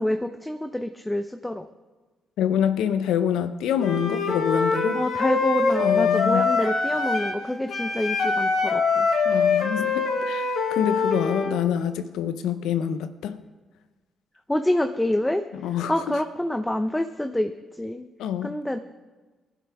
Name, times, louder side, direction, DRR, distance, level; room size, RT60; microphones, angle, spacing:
voice 1, 0.0-1.7 4.9-9.1 14.5-15.4 15.9-18.1 18.4-18.8, left 1 dB, 10° left, 7 dB, 0.7 m, -27 dB
voice 2, 2.4-5.0 5.8-6.5 9.2-13.4 15.6-15.9 18.2-18.5, left 9 dB, 85° left, 11 dB, 0.7 m, -26 dB
Wind instrument woodwind instrument, 3.8-7.4 7.7-11.6, left 4 dB, 65° left, 2.0 m, -24 dB
20.0 x 11.0 x 3.5 m, 1.3 s
supercardioid pair, 65°, 0 cm